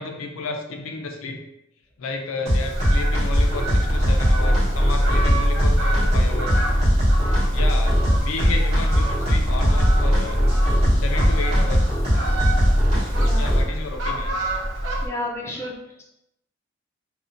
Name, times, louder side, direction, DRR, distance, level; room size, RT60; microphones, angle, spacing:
voice 1, 0.0-1.4 2.0-6.6 7.5-10.5 10.9-12.0 13.4-14.4, left 3 dB, 90° left, 4 dB, 0.4 m, -32 dB
sound 1, 2.5-13.6, equal, 30° right, 0.9 m, -19 dB
Fowl, 2.7-15.1, right 1 dB, 65° right, 0.5 m, -28 dB
voice 2, 15.0-16.0, left 1 dB, 15° left, -2 dB, 0.3 m, -32 dB
2.4 x 2.1 x 2.5 m, 0.84 s
head